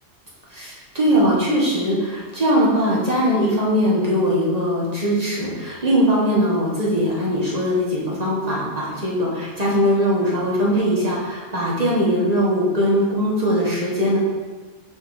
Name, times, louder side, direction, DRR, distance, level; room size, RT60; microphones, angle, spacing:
voice 1, 0.5-14.2, equal, 30° right, -6 dB, 1.4 m, -20 dB
5.5 x 5.3 x 4.0 m, 1.4 s
omnidirectional pair, 1.3 m